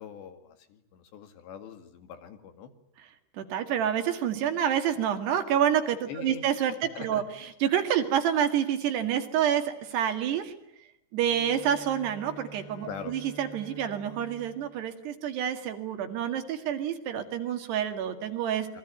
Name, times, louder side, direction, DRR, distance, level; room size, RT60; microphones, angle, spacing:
voice 1, 0.0-2.7 6.1-6.4 7.0-7.2 12.9-13.1 18.7-18.8, left 7 dB, 70° left, 8 dB, 4.2 m, -42 dB
voice 2, 3.3-10.5 11.1-18.7, right 9 dB, 65° right, 6 dB, 4.0 m, -28 dB
Bowed string instrument, 11.2-16.0, right 2 dB, 30° left, 8.7 m, -49 dB
27.5 x 23.0 x 9.0 m, 0.79 s
omnidirectional pair, 5.3 m